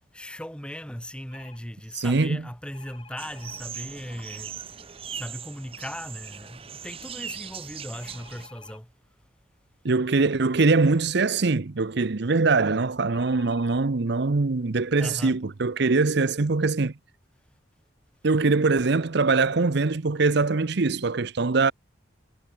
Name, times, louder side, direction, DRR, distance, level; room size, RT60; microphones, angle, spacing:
voice 1, 0.1-8.9 15.0-15.3, equal, 5° left, 2.7 m, -38 dB
sound 1, 1.3-1.6 2.7-3.6 7.9-8.8 13.1-13.8 14.6-14.7 14.9-15.1, left 4 dB, 25° left, 3.0 m, -51 dB
voice 2, 1.9-2.4 9.8-16.9 18.2-21.7, right 3 dB, 60° right, 0.7 m, -22 dB
sound 2, 3.2-8.5, right 8 dB, 30° right, 0.9 m, -40 dB
head